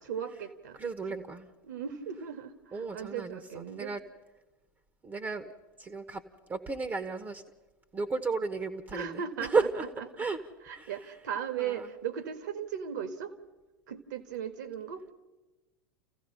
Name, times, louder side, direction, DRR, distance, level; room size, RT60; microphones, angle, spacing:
voice 1, 0.0-0.8 1.6-3.9 8.9-10.1 10.6-13.3 13.9-15.0, right 8 dB, 60° right, 9 dB, 1.9 m, -37 dB
voice 2, 0.8-1.5 2.7-4.0 5.0-5.5 5.8-6.2 6.5-7.4 7.9-9.2 9.5-9.8 10.2-10.4 10.7-10.9 11.6-11.9, right 4 dB, 20° right, 10 dB, 1.2 m, -33 dB
29.5 x 15.5 x 5.7 m, 1.1 s
figure-of-eight pair, 85°, 11 cm